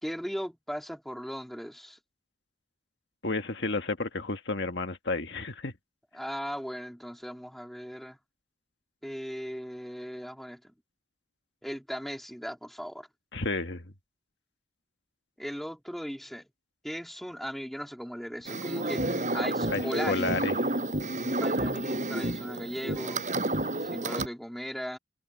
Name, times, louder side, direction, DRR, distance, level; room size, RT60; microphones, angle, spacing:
voice 1, 0.0-2.0 6.1-8.2 9.0-10.7 11.6-13.1 15.4-16.4 16.8-20.4 21.2-23.2 23.8-25.0, equal, ahead, 3.8 m, -37 dB
voice 2, 3.2-5.7 13.3-13.9 19.7-20.5, left 3 dB, 60° left, 1.7 m, -31 dB
sound 1, 18.5-24.3, right 1 dB, 40° right, 8.0 m, -30 dB
head